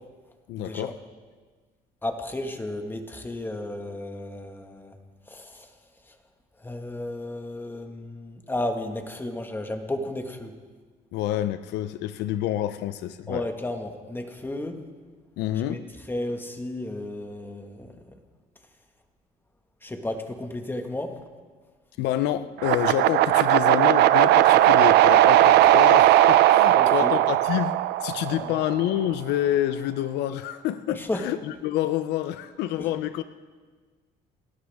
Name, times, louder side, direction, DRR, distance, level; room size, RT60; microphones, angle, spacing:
voice 1, 0.5-1.0 11.1-13.5 15.4-15.9 22.0-33.2, left 12 dB, 85° left, 12 dB, 0.6 m, -28 dB
voice 2, 2.0-4.9 5.3-5.7 6.6-10.5 13.3-14.8 15.6-15.8 16.1-17.9 19.8-21.1 26.7-27.1 28.3-28.6 31.0-31.2, left 1 dB, 10° left, 5 dB, 1.7 m, -33 dB
sound 1, 22.6-28.7, right 14 dB, 80° right, 0.6 m, -18 dB
29.5 x 13.0 x 3.6 m, 1.5 s
cardioid pair, 110°, 17 cm